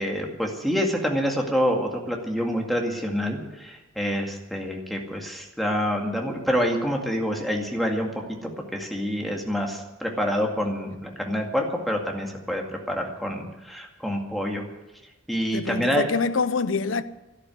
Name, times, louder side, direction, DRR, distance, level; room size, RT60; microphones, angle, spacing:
voice 1, 0.0-8.1 8.4-14.6 15.3-16.1, equal, ahead, 2.1 m, -27 dB
voice 2, 15.5-17.0, left 4 dB, 75° left, 0.7 m, -25 dB
12.5 x 11.5 x 9.5 m
head